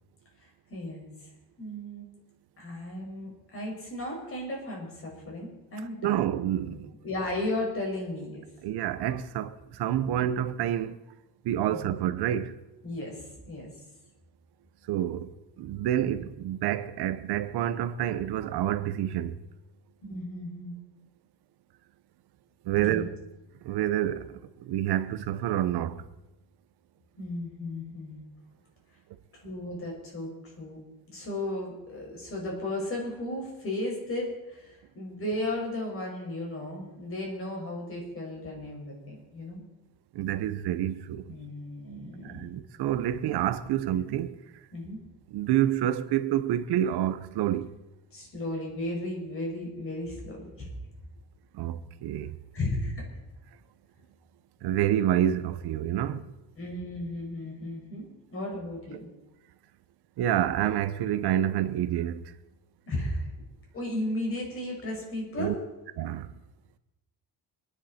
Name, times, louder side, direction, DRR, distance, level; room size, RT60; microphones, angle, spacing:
voice 1, 0.4-1.3 1.6-2.1 2.6-6.2 6.7-8.4 11.7-12.0 12.8-13.7 20.1-20.8 22.7-23.1 27.2-28.2 29.3-30.8 31.1-39.6 41.3-42.5 44.7-45.0 48.1-50.7 52.5-53.0 56.6-59.1 62.9-63.3 63.7-65.5, left 1 dB, 35° left, 5.7 m, -35 dB
voice 2, 6.0-6.9 8.6-11.0 11.4-12.6 14.9-15.3 15.6-19.4 22.6-23.2 23.6-26.0 40.1-41.3 42.2-44.4 45.3-47.7 51.5-52.3 54.6-56.3 60.2-62.3 65.4-65.5 66.0-66.3, right 11 dB, 85° right, 1.0 m, -28 dB
26.5 x 10.5 x 4.4 m
cardioid pair, 155°, 38 cm